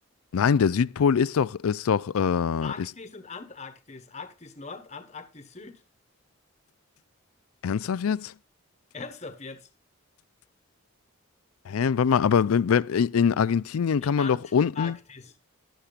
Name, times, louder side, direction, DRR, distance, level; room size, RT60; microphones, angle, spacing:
voice 1, 0.3-2.7 7.6-8.3 11.7-15.0, left 6 dB, 80° left, 0.4 m, -23 dB
voice 2, 2.6-5.8 8.9-9.7 14.0-15.3, left 5 dB, 30° left, 1.3 m, -40 dB
12.5 x 11.5 x 2.4 m
head